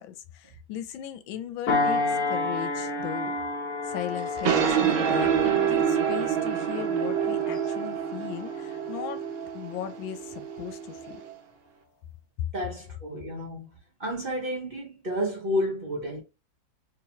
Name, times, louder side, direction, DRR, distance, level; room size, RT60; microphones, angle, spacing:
voice 1, 0.0-3.4 3.8-9.2 9.5-11.2 12.4-12.5, left 11 dB, 85° left, 1.3 m, -37 dB
sound 1, 1.7-10.5 11.0-11.2, left 2 dB, 55° left, 1.4 m, -32 dB
sound 2, 4.2-11.3, right 8 dB, 90° right, 1.5 m, -27 dB
voice 2, 12.5-13.7 14.0-16.2, equal, 35° right, 1.0 m, -31 dB
3.5 x 2.9 x 2.8 m
omnidirectional pair, 2.1 m